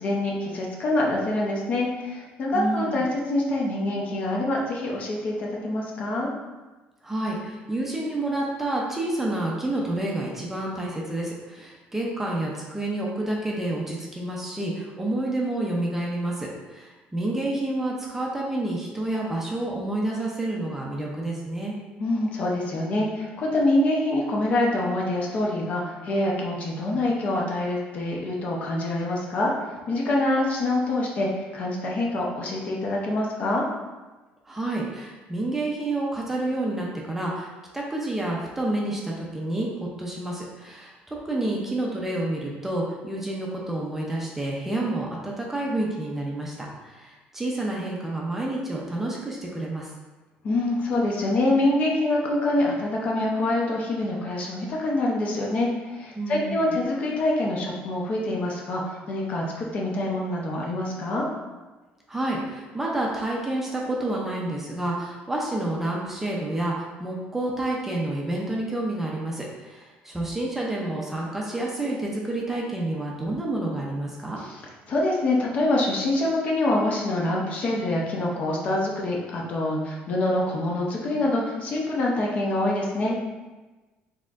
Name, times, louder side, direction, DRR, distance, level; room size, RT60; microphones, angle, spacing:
voice 1, 0.0-6.3 22.0-33.7 50.4-61.3 74.9-83.2, left 1 dB, 40° left, -2 dB, 0.7 m, -25 dB
voice 2, 2.5-3.0 7.0-21.8 34.4-49.9 56.2-56.7 62.1-74.4, right 1 dB, 10° right, -3 dB, 0.5 m, -29 dB
4.2 x 3.6 x 2.5 m, 1.2 s
cardioid pair, 150°, 4 cm